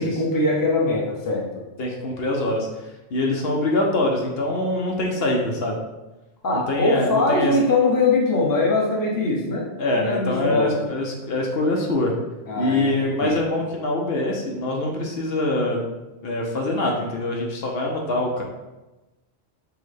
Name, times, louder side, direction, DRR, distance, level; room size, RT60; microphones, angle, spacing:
voice 1, 0.0-1.5 6.4-9.7 9.9-10.8 12.5-13.4, left 2 dB, 20° left, -2 dB, 0.6 m, -22 dB
voice 2, 1.8-5.8 6.5-7.6 9.8-12.1 12.6-15.8 16.2-18.4, left 1 dB, 65° left, 0 dB, 0.8 m, -24 dB
5.9 x 2.1 x 3.2 m, 1.1 s
omnidirectional pair, 1.2 m